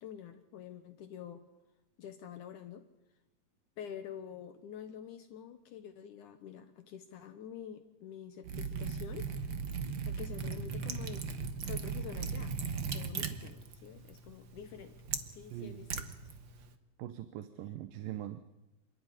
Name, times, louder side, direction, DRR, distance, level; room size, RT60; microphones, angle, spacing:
voice 1, 0.0-1.4 2.0-2.8 3.8-9.3 9.6-9.7 10.0-11.2 11.6-12.6 12.9-15.0 15.3-16.1, left 9 dB, 70° left, 7 dB, 2.5 m, -47 dB
Liquid, 8.4-16.7, right 5 dB, 55° right, 1.3 m, -38 dB
voice 2, 15.5-15.9 17.0-18.4, right 12 dB, 85° right, 11 dB, 2.7 m, -42 dB
28.0 x 12.5 x 10.0 m, 0.95 s
omnidirectional pair, 3.9 m